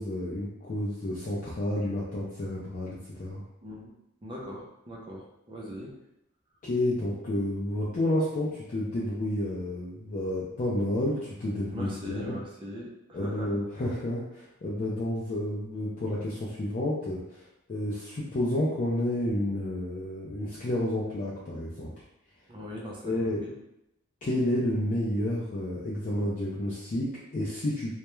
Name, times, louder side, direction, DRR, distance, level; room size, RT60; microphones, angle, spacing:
voice 1, 0.0-3.4 6.6-12.4 13.1-17.4 17.7-21.9 23.0-23.4 24.2-27.9, left 1 dB, 40° left, -7 dB, 0.4 m, -30 dB
voice 2, 3.6-3.9 4.2-6.0 11.7-13.5 22.5-23.1 23.4-23.5, equal, 25° right, -3 dB, 0.5 m, -40 dB
2.2 x 2.1 x 3.0 m, 0.85 s
head